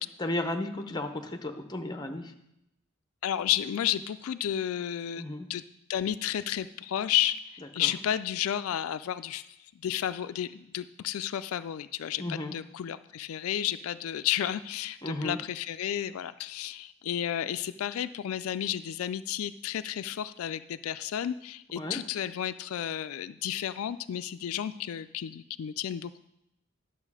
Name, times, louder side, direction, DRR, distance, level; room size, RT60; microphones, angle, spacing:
voice 1, 0.2-2.3 5.2-5.5 7.8-7.9 12.2-12.5 15.0-15.4 21.8-22.0, left 1 dB, 20° left, 6 dB, 0.8 m, -34 dB
voice 2, 3.2-5.2 5.5-5.6 5.9-9.4 9.8-26.2, left 11 dB, 80° left, 12 dB, 0.3 m, -32 dB
11.0 x 7.2 x 4.8 m, 0.84 s
head